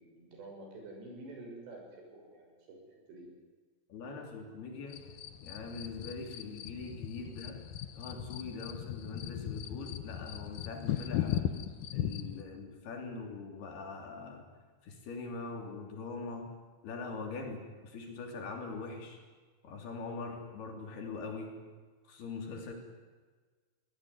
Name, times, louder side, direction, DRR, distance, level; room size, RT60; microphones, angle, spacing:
voice 1, 0.0-3.3, right 2 dB, 70° right, 0 dB, 8.7 m, -49 dB
voice 2, 3.9-5.0 5.4-7.6 7.9-11.5 11.9-14.5 14.8-16.6 16.8-19.2 19.6-21.6 22.0-22.7, left 4 dB, 60° left, 3 dB, 5.0 m, -42 dB
sound 1, 4.9-12.4, left 11 dB, 80° left, 1.8 m, -38 dB
24.0 x 18.0 x 9.6 m, 1.4 s
omnidirectional pair, 5.3 m